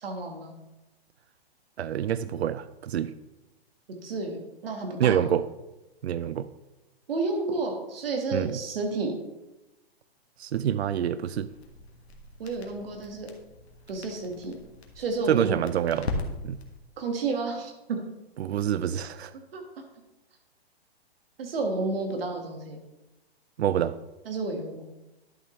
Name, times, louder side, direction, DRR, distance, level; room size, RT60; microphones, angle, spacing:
voice 1, 0.0-0.5 4.0-5.3 7.1-9.1 12.4-13.3 13.9-14.5 15.0-15.6 17.0-18.0 19.5-19.6 21.4-22.8 24.2-24.9, right 3 dB, 65° right, 3 dB, 1.6 m, -31 dB
voice 2, 1.8-3.1 5.0-5.4 6.0-6.5 8.3-8.6 10.4-11.5 15.3-16.2 16.4-16.6 18.4-19.3 23.6-24.0, right 9 dB, 90° right, 14 dB, 0.5 m, -26 dB
Crackle, 11.5-16.8, left 3 dB, 85° left, 1.5 m, -39 dB
11.0 x 6.3 x 3.1 m, 0.99 s
hypercardioid pair, 155°, 31 cm